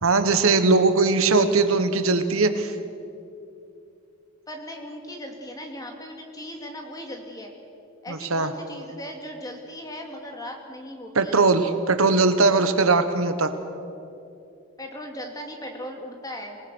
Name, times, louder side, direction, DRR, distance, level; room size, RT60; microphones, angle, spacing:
voice 1, 0.0-2.7 8.1-8.5 11.1-13.5, right 3 dB, 75° right, 9 dB, 1.3 m, -20 dB
voice 2, 4.5-7.5 8.0-11.4 14.8-16.6, equal, 15° left, 2 dB, 2.5 m, -38 dB
26.0 x 18.5 x 6.4 m, 2.6 s
head